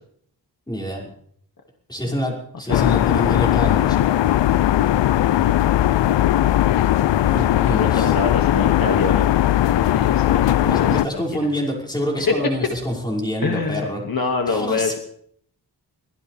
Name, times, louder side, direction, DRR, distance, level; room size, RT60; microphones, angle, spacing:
voice 1, 0.7-1.1 1.9-4.0 7.2-8.1 10.6-14.0 14.5-14.9, equal, 10° left, -3 dB, 5.7 m, -26 dB
sound 1, 2.7-11.1, left 12 dB, 90° left, 0.5 m, -18 dB
voice 2, 7.7-9.3 9.8-11.2 12.2-12.3 13.4-15.0, left 4 dB, 55° left, 2 dB, 2.0 m, -25 dB
24.5 x 16.5 x 3.4 m, 0.65 s
wide cardioid pair, 150°, 42 cm